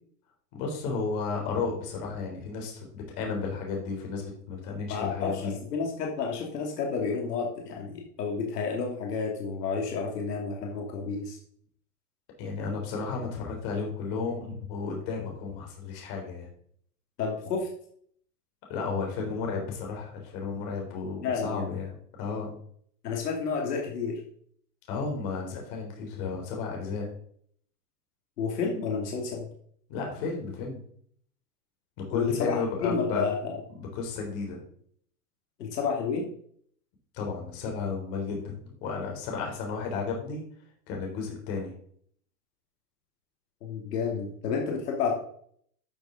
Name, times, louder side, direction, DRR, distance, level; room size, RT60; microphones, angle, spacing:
voice 1, 0.5-5.5 12.4-16.5 18.7-22.5 24.9-27.1 29.9-30.8 32.0-33.3 33.8-34.6 37.1-40.4 40.9-41.7, left 4 dB, 40° left, 1 dB, 3.7 m, -33 dB
voice 2, 4.9-11.4 17.2-17.7 21.2-21.8 23.0-24.2 28.4-29.5 32.1-33.4 35.6-36.3 43.6-45.1, left 5 dB, 80° left, 0 dB, 2.8 m, -30 dB
12.0 x 6.9 x 3.9 m, 0.63 s
supercardioid pair, 150°, 47 cm